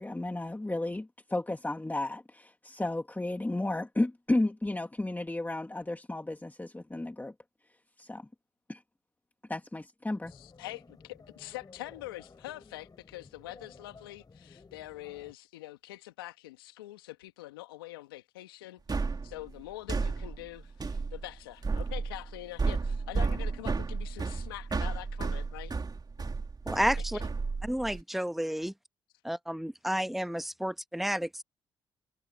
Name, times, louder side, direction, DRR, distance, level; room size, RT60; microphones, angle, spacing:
voice 1, 0.0-7.3 8.0-8.3 8.7-8.8 9.5-10.3, left 2 dB, 15° left, 1.9 m, -33 dB
sound 1, 10.2-15.3, left 4 dB, 35° left, 4.8 m, -55 dB
voice 2, 10.4-10.8 11.4-25.7 27.1-27.3, left 17 dB, 90° left, 2.2 m, -44 dB
sound 2, 18.9-28.0, right 4 dB, 35° right, 2.9 m, -33 dB
voice 3, 26.7-27.2 27.6-28.7 29.2-31.4, equal, ahead, 1.2 m, -31 dB
hypercardioid pair, 45°, 12 cm